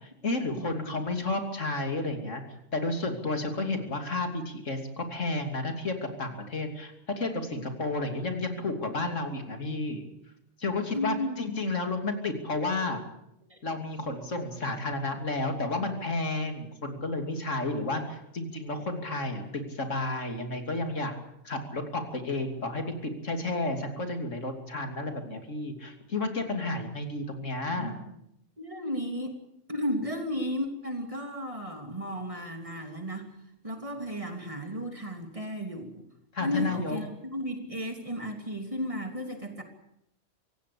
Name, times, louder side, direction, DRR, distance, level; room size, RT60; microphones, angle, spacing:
voice 1, 0.0-2.4 2.7-10.0 10.6-13.0 13.6-21.1 21.4-27.9 36.3-37.0, left 2 dB, 90° left, 5 dB, 3.3 m, -32 dB
voice 2, 0.5-1.0 10.9-11.4 13.5-13.6 27.8-28.1 28.6-29.4 29.7-33.3 33.6-36.0 36.4-39.6, equal, 25° right, 4 dB, 3.1 m, -34 dB
25.0 x 17.0 x 8.6 m, 0.79 s
omnidirectional pair, 1.3 m